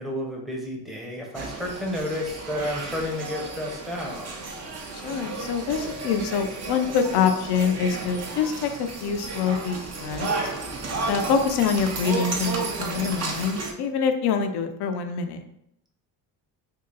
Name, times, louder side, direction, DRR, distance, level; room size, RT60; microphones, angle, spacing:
voice 1, 0.0-4.4, left 1 dB, ahead, -1 dB, 0.7 m, -31 dB
sound 1, 1.3-13.7, right 3 dB, 40° right, 0.7 m, -33 dB
voice 2, 4.9-10.5 11.1-15.4, left 6 dB, 70° left, 7 dB, 0.6 m, -25 dB
2.8 x 2.8 x 3.8 m, 0.76 s
cardioid pair, 105°, 42 cm